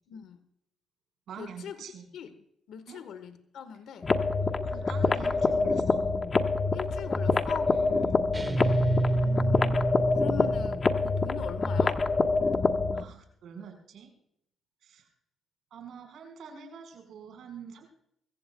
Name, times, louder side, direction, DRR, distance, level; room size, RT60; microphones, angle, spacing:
voice 1, 0.1-0.4 1.4-1.8 2.1-2.3 2.7-4.1 6.7-7.8 8.8-12.0, left 8 dB, 75° left, 11 dB, 1.3 m, -41 dB
voice 2, 1.3-2.1 2.9-3.0 4.6-6.2 7.6-8.3 12.9-14.1 14.8-15.1 15.7-17.9, right 7 dB, 70° right, 4 dB, 4.8 m, -45 dB
sound 1, 4.0-13.0, left 3 dB, 35° left, 1.3 m, -26 dB
sound 2, 8.3-10.9, right 2 dB, 20° right, 1.5 m, -28 dB
24.5 x 15.0 x 2.3 m, 0.72 s
cardioid pair, 90°, 0 cm